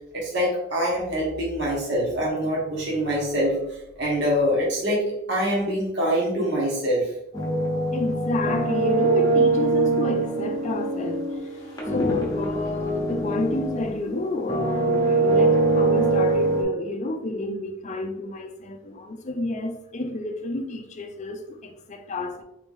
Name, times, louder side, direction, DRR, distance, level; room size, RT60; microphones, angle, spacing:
voice 1, 0.1-3.5 4.0-5.0 5.3-7.1, equal, 55° right, 1.4 m, -24 dB
sound 1, 7.3-14.0 14.4-16.6, right 2 dB, 20° left, 0.9 m, -23 dB
voice 2, 7.9-11.2 11.9-22.4, left 2 dB, 35° left, 0.4 m, -30 dB
4.0 x 2.9 x 3.6 m
head